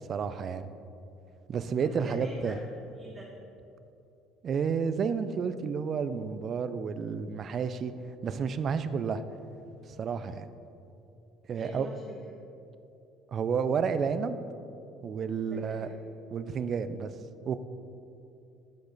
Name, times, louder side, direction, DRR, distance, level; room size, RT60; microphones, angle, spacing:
voice 1, 0.1-0.7 1.5-2.6 4.4-7.9 8.2-9.2 9.9-10.5 11.5-11.9 13.3-14.4 15.0-15.9 16.3-17.1 17.5-17.6, right 6 dB, 45° right, 12 dB, 0.4 m, -31 dB
voice 2, 1.8-3.3 11.5-12.2 15.4-16.0, right 1 dB, 20° right, -2 dB, 0.9 m, -44 dB
8.6 x 4.9 x 3.9 m, 2.8 s
supercardioid pair, 80°, 0 cm